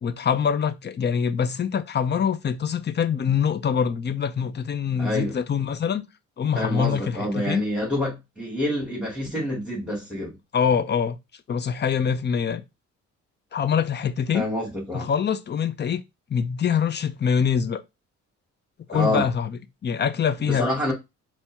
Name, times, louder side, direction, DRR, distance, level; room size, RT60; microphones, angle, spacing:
voice 1, 0.0-6.0 6.4-7.6 10.5-11.2 11.5-12.6 13.5-14.5 14.9-16.0 16.3-17.8 18.9-20.7, left 7 dB, 35° left, 0.6 m, -24 dB
voice 2, 5.0-5.3 6.5-10.4 14.3-15.1 18.9-19.3 20.4-20.9, left 1 dB, 5° right, 2.6 m, -27 dB
4.3 x 3.1 x 3.5 m
cardioid pair, 90°, 30 cm